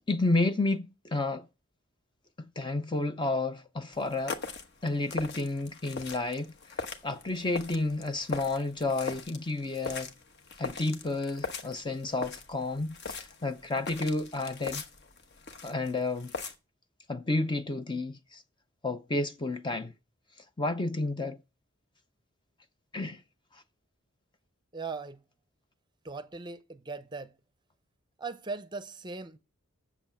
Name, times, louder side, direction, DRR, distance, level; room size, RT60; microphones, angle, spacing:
voice 1, 0.1-1.5 2.4-4.4 4.8-10.1 10.6-14.8 15.6-16.3 17.1-18.4 18.8-19.9 20.6-21.4 22.9-23.2 23.5-23.6, left 2 dB, 20° left, 0.5 m, -31 dB
sound 1, 3.9-16.5, left 4 dB, 50° left, 1.1 m, -41 dB
voice 2, 24.7-25.2 26.0-27.3 28.2-29.4, right 4 dB, 20° right, 0.6 m, -39 dB
7.9 x 7.1 x 7.2 m
head